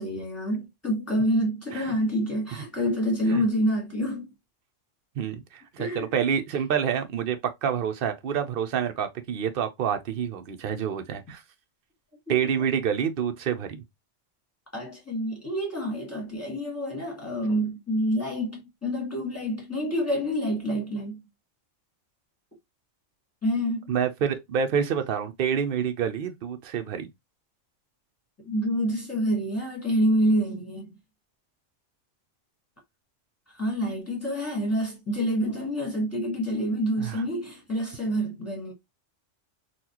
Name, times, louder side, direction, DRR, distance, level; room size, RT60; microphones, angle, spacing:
voice 1, 0.0-4.3 5.8-6.1 12.3-12.4 14.7-21.2 23.4-23.9 28.4-31.0 33.6-38.7, equal, 10° left, 1.5 m, -27 dB
voice 2, 5.2-11.4 12.3-13.8 23.9-27.1 37.0-37.2, right 8 dB, 55° right, 0.7 m, -28 dB
4.1 x 2.3 x 2.8 m
omnidirectional pair, 1.3 m